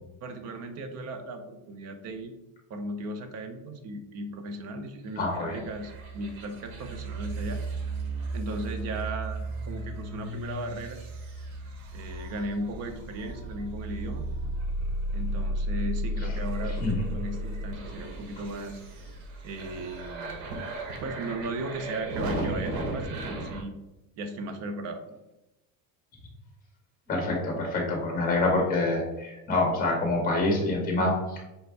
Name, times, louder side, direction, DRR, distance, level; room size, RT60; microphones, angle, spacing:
voice 1, 0.2-2.3 2.7-7.6 8.3-11.0 11.9-14.3 15.1-18.8 19.4-20.4 21.0-23.7 24.2-25.0, right 1 dB, 40° right, 6 dB, 0.6 m, -36 dB
voice 2, 5.2-5.6 16.2-16.4 16.6-17.0 27.1-31.4, left 2 dB, 20° left, 0 dB, 1.1 m, -26 dB
sound 1, 5.3-23.6, right 1 dB, 75° right, 1.0 m, -34 dB
5.3 x 2.5 x 3.3 m, 0.97 s
cardioid pair, 150°, 40 cm